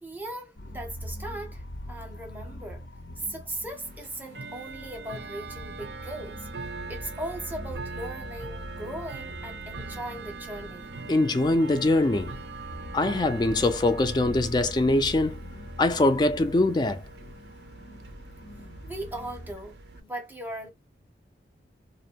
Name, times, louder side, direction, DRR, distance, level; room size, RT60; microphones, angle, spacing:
voice 1, 0.0-2.9 3.2-6.5 6.9-10.9 18.6-20.7, right 1 dB, 10° right, 0.7 m, -38 dB
sound 1, 0.6-19.5, left 1 dB, 90° left, 0.7 m, -42 dB
Bell / Tick-tock, 3.6-20.0, right 4 dB, 65° right, 0.4 m, -42 dB
voice 2, 11.1-12.3 12.9-15.4 15.8-17.0, left 2 dB, 25° left, 0.3 m, -23 dB
2.6 x 2.1 x 2.8 m
head